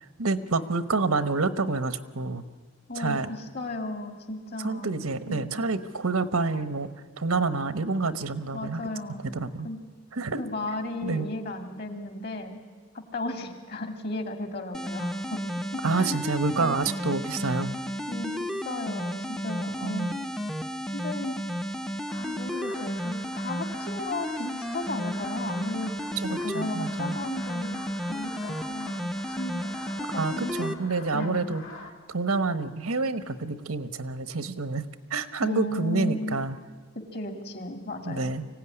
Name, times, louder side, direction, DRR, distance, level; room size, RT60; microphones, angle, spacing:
voice 1, 0.2-2.4 3.0-3.3 4.6-6.9 7.2-8.8 9.3-9.7 10.1-10.4 11.0-11.3 15.8-17.7 19.8-20.2 26.2-27.2 30.1-31.6 32.1-34.8 35.1-36.6 38.1-38.5, right 3 dB, 85° right, 12 dB, 1.1 m, -28 dB
voice 2, 2.9-5.0 5.3-5.8 8.5-9.8 10.4-12.6 12.9-16.2 18.1-20.3 20.9-21.4 22.2-26.0 26.3-29.7 30.0-30.7 31.1-31.4 35.4-36.4 36.9-38.3, left 2 dB, 45° left, 6 dB, 2.4 m, -35 dB
sound 1, 14.7-30.7, equal, ahead, 0.6 m, -33 dB
sound 2, 22.1-31.9, left 3 dB, 65° left, 2.4 m, -46 dB
24.5 x 16.5 x 9.9 m, 1.5 s
head